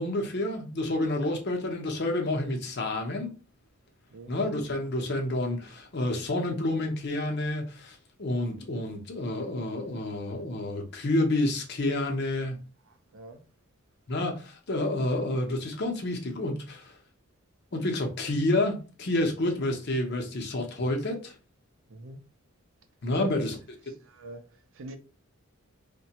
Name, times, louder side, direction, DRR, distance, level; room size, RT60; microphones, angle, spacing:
voice 1, 0.0-3.3 4.3-12.6 14.1-16.9 17.7-21.3 23.0-23.6, left 1 dB, 50° left, 0.6 m, -29 dB
voice 2, 12.9-13.4 21.9-22.2 23.1-23.3 23.8-25.0, right 2 dB, 60° right, 0.5 m, -44 dB
3.1 x 2.2 x 2.8 m
head